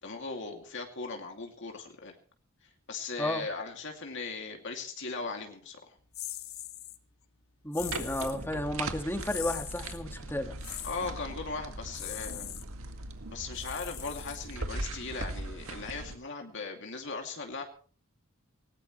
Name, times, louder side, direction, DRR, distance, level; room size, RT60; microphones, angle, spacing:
voice 1, 0.0-2.2 2.9-5.9 10.8-12.4 13.3-17.6, left 4 dB, 60° left, 2 dB, 2.6 m, -38 dB
sound 1, 6.1-7.0 7.7-8.4 9.2-10.0 10.6-11.1 11.9-12.6 13.5-14.7, left 14 dB, 85° left, 1.3 m, -41 dB
voice 2, 7.6-10.6, left 1 dB, 10° left, 6 dB, 1.8 m, -32 dB
sound 2, 7.8-16.2, right 2 dB, 85° right, 2.0 m, -40 dB
19.5 x 18.5 x 3.2 m, 0.41 s
head